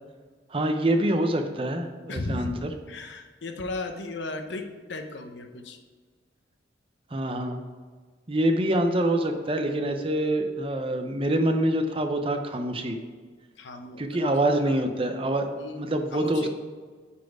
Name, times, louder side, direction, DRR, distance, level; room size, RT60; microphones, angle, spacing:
voice 1, 0.5-2.7 7.1-7.6 8.3-13.0 14.0-16.5, right 1 dB, 30° right, 6 dB, 0.6 m, -26 dB
voice 2, 2.1-5.8 13.6-14.0 14.7-14.8 15.6-15.8 16.1-16.5, left 2 dB, 70° left, 6 dB, 0.8 m, -35 dB
9.7 x 4.3 x 4.7 m, 1.5 s
head